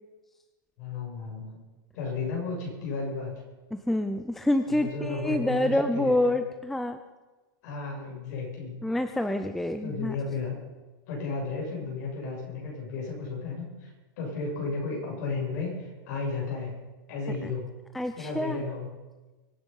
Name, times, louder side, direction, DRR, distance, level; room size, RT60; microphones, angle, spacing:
voice 1, 0.8-1.6 1.9-3.4 4.6-6.4 7.6-8.8 9.8-10.6 11.1-16.8 17.1-17.8 18.1-19.0, left 4 dB, 50° left, -1 dB, 7.4 m, -34 dB
voice 2, 3.7-7.0 8.8-10.2 17.9-18.6, left 1 dB, ahead, 8 dB, 0.5 m, -27 dB
24.0 x 10.0 x 5.5 m, 1.2 s
supercardioid pair, 165°, 11 cm